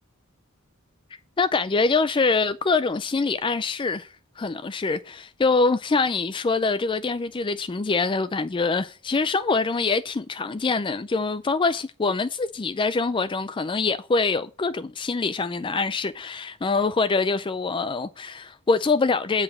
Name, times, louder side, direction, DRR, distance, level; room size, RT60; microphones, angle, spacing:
voice 1, 1.4-19.4, left 4 dB, 25° left, 0.4 m, -24 dB
8.5 x 4.8 x 7.1 m
head